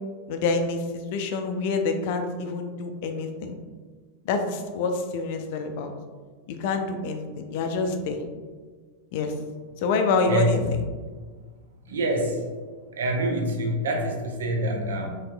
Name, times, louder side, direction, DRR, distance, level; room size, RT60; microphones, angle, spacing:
voice 1, 0.3-0.8 1.1-3.5 4.2-5.9 6.5-8.2 9.1-9.3 9.8-10.8, left 4 dB, 50° left, 5 dB, 0.4 m, -27 dB
voice 2, 11.9-12.5 13.0-15.2, right 1 dB, 65° right, 2 dB, 0.6 m, -26 dB
4.1 x 3.2 x 2.2 m, 1.5 s
figure-of-eight pair, 90°, 0 cm